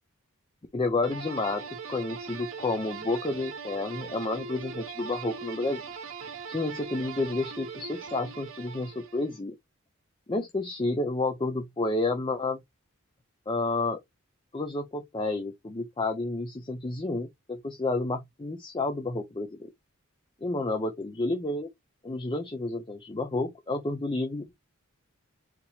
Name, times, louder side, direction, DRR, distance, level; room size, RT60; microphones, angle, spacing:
voice 1, 0.7-5.8 6.5-9.5 10.3-12.6 13.5-14.0 14.5-19.6 20.4-21.7 22.0-24.5, left 2 dB, 20° left, 0.5 m, -30 dB
sound 1, 1.0-9.4, right 5 dB, 65° right, 1.1 m, -40 dB
4.1 x 2.9 x 2.7 m
head